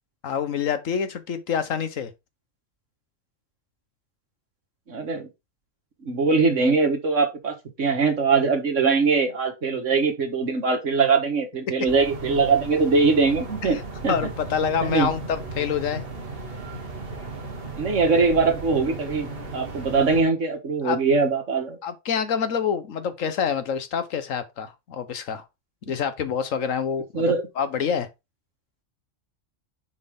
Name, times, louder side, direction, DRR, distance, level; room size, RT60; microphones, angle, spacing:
voice 1, 0.2-2.1 14.1-16.0 20.8-21.0 21.8-25.4 25.9-27.2 27.6-28.1, left 7 dB, 85° left, 1.4 m, -26 dB
voice 2, 4.9-5.3 6.0-14.3 14.8-15.1 17.8-21.8 27.1-27.4, right 4 dB, 70° right, 1.9 m, -22 dB
sound 1, 11.9-20.2, right 3 dB, 50° right, 1.6 m, -36 dB
7.1 x 4.6 x 3.7 m
omnidirectional pair, 1.3 m